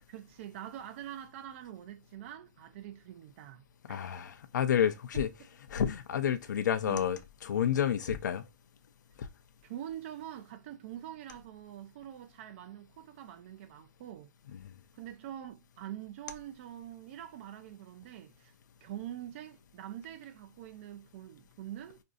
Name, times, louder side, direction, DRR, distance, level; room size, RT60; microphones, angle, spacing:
voice 1, 0.1-4.1 6.9-7.0 9.6-14.3 14.9-18.5 18.8-22.0, right 11 dB, 45° right, 0.4 m, -45 dB
voice 2, 3.9-5.3 5.7-8.4 9.2-9.3 14.5-14.7, left 9 dB, 80° left, 0.5 m, -30 dB
4.6 x 2.5 x 2.5 m
hypercardioid pair, 155°, 10 cm